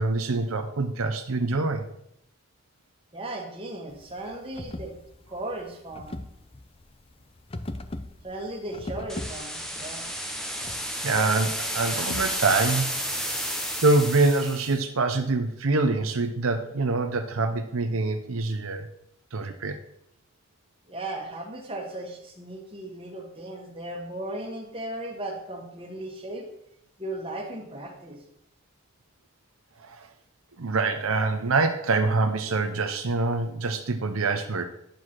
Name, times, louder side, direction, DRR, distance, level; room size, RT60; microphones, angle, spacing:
voice 1, 0.0-1.8 11.0-12.9 13.8-18.9 19.3-19.8 29.8-30.1 30.6-34.6, right 3 dB, 80° right, 7 dB, 0.8 m, -25 dB
voice 2, 3.1-4.9 5.3-6.2 8.2-10.1 20.9-26.4 27.0-28.2, right 1 dB, 25° right, -1 dB, 1.9 m, -36 dB
sound 1, 3.9-12.8, left 1 dB, 25° left, 0.5 m, -40 dB
sound 2, 9.1-14.8, equal, ahead, 1.0 m, -31 dB
10.5 x 4.9 x 6.1 m, 0.77 s
head